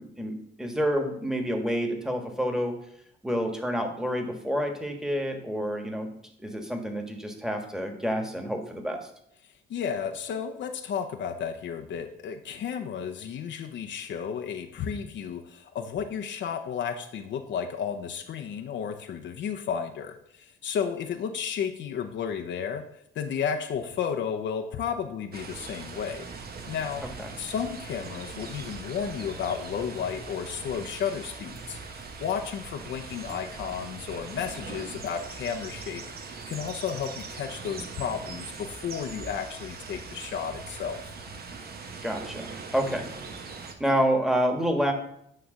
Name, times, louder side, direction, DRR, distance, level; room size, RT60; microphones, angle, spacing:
voice 1, 0.0-2.7 3.2-6.1 6.4-9.1 27.2-27.3 42.0-43.1 43.4-44.9, equal, 5° right, 4 dB, 1.5 m, -28 dB
voice 2, 9.4-22.9 23.1-26.3 26.7-27.0 27.4-41.1, left 7 dB, 65° left, 4 dB, 0.7 m, -33 dB
sound 1, 25.3-43.7, right 4 dB, 50° right, 1.1 m, -41 dB
9.4 x 3.3 x 6.3 m, 0.74 s
cardioid pair, 90°, 20 cm